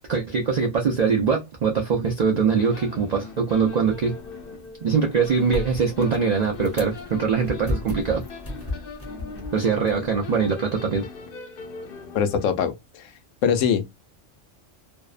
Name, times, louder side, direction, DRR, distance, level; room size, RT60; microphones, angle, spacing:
voice 1, 0.1-4.2 4.8-8.2 9.5-11.1, right 5 dB, 80° right, 0.3 m, -22 dB
sound 1, 2.6-12.5, left 4 dB, 60° left, 0.6 m, -40 dB
sound 2, 3.6-10.5, left 1 dB, 15° left, 0.5 m, -36 dB
voice 2, 12.1-13.0 13.4-13.9, left 7 dB, 85° left, 1.0 m, -22 dB
2.7 x 2.0 x 2.4 m
omnidirectional pair, 1.3 m